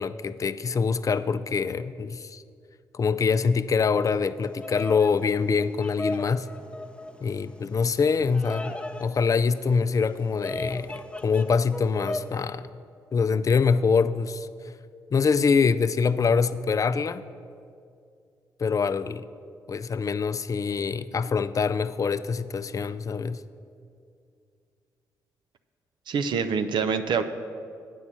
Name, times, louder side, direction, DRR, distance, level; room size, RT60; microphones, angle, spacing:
voice 1, 0.0-2.4 2.9-6.5 7.2-12.8 13.1-14.5 15.1-17.3 18.6-19.3 19.7-23.4, left 5 dB, 45° left, 13 dB, 0.4 m, -24 dB
Bird vocalization bird call bird song, 4.4-12.4, left 2 dB, 10° left, 0.7 m, -38 dB
voice 2, 26.1-27.2, right 6 dB, 70° right, 10 dB, 0.5 m, -25 dB
8.3 x 5.4 x 7.5 m, 2.4 s
supercardioid pair, 45°, 8 cm